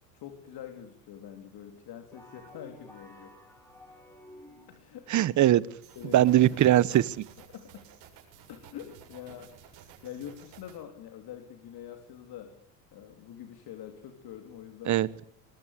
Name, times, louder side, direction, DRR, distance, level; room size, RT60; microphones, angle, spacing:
voice 1, 0.1-3.4 4.7-5.1 6.0-6.6 7.5-7.9 8.5-12.6 12.9-15.0, left 9 dB, 45° left, 6 dB, 3.5 m, -45 dB
sound 1, 2.1-5.0, left 1 dB, 5° left, 6.4 m, -52 dB
voice 2, 5.1-5.6 6.1-7.2 14.9-15.2, right 13 dB, 35° right, 20 dB, 1.1 m, -21 dB
sound 2, 5.8-10.8, right 9 dB, 60° right, 7.4 m, -53 dB
22.0 x 20.5 x 8.4 m, 0.68 s
hypercardioid pair, 80°, 49 cm